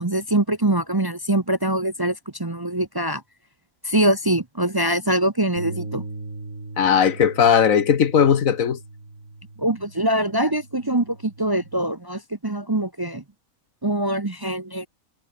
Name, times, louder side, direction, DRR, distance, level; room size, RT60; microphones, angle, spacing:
voice 1, 0.0-3.2 3.8-6.0 9.6-13.2 13.8-14.9, right 1 dB, 20° right, 0.8 m, -23 dB
Bass guitar, 5.6-11.8, right 2 dB, 75° right, 5.2 m, -39 dB
voice 2, 6.8-8.8, left 7 dB, 75° left, 1.6 m, -17 dB
omnidirectional pair, 1.4 m